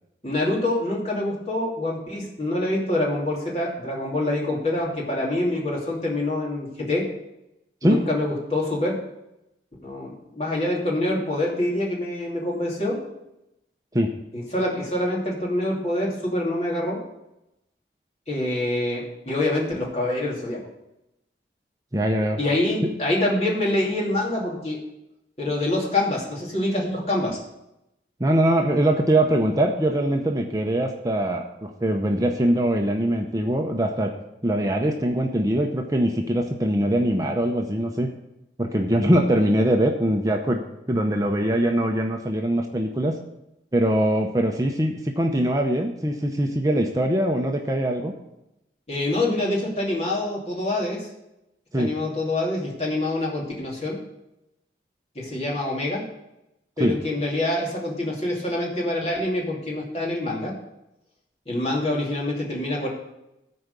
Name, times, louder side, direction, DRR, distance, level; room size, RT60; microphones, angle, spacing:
voice 1, 0.2-7.0 7.8-8.9 9.8-13.0 14.3-17.0 18.3-20.6 22.4-24.8 25.4-27.4 48.9-51.1 51.7-54.0 55.1-56.0 56.8-60.5 61.5-62.9, left 1 dB, 35° left, -3 dB, 2.7 m, -26 dB
voice 2, 21.9-22.4 28.2-34.1 34.4-38.1 38.6-43.1 43.7-48.1 51.7-51.9 56.8-57.0, right 1 dB, 20° right, 2 dB, 0.7 m, -22 dB
13.5 x 4.7 x 6.7 m, 0.88 s
head